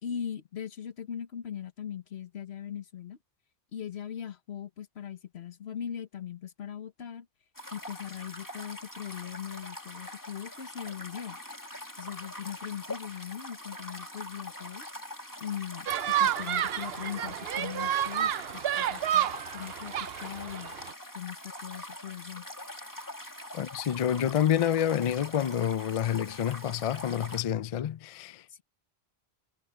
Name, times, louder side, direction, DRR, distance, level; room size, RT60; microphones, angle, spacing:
voice 1, 0.0-3.2 3.7-7.3 7.7-11.4 12.0-14.9 15.4-19.9 20.2-20.7 21.1-22.5 28.5-28.6, left 9 dB, 90° left, 1.3 m, -40 dB
sound 1, 7.5-27.4, left 1 dB, 20° left, 2.1 m, -43 dB
sound 2, 15.9-20.9, right 10 dB, 70° right, 0.9 m, -30 dB
voice 2, 23.5-28.4, left 10 dB, 50° left, 0.4 m, -28 dB
omnidirectional pair, 1.1 m